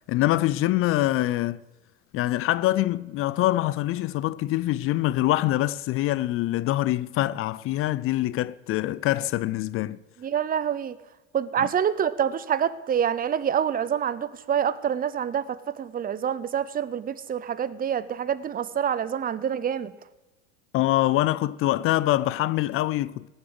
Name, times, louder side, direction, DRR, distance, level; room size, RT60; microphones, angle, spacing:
voice 1, 0.1-1.6 2.1-10.0 11.6-11.7 20.7-23.3, left 15 dB, 40° left, 0.4 m, -24 dB
voice 2, 10.2-10.9 11.3-19.9, right 8 dB, 25° right, 0.6 m, -26 dB
16.0 x 7.3 x 7.8 m
supercardioid pair, 110°, 36 cm